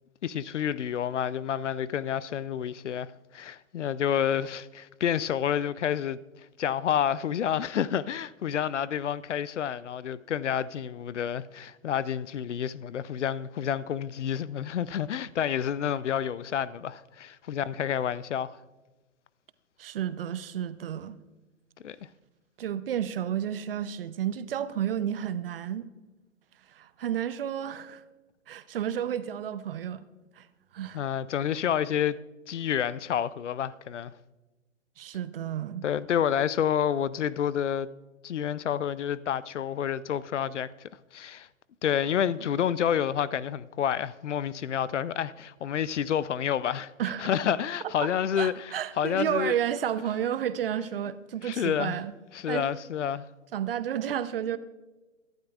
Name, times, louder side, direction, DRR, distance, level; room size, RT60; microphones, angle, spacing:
voice 1, 0.2-6.2 6.6-18.6 21.8-22.0 30.9-32.2 32.5-34.1 35.8-37.9 38.2-41.5 41.8-46.9 47.2-49.5 51.4-52.0 52.3-53.2, left 9 dB, 60° left, 0.6 m, -29 dB
voice 2, 19.8-21.2 22.6-25.9 26.7-28.0 28.5-30.1 30.4-30.5 30.7-31.0 35.0-35.8 47.0-47.3 48.4-52.1 52.5-52.7 53.5-54.6, right 10 dB, 45° right, 0.7 m, -31 dB
23.0 x 12.0 x 2.4 m
figure-of-eight pair, 125°, 40 cm